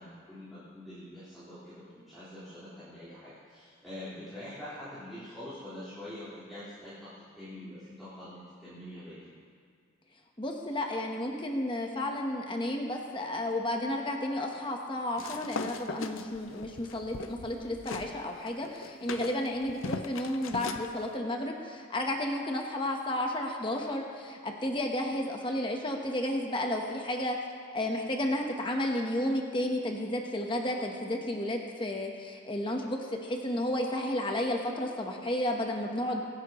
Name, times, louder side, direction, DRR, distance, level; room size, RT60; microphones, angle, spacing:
voice 1, 0.0-9.3, left 1 dB, ahead, -16 dB, 4.4 m, -45 dB
voice 2, 10.4-27.4 27.7-36.2, left 1 dB, 25° left, 1 dB, 1.1 m, -32 dB
sound 1, 15.2-18.1 18.5-20.9, left 4 dB, 90° left, 0.7 m, -39 dB
24.5 x 11.0 x 3.1 m, 2.1 s
head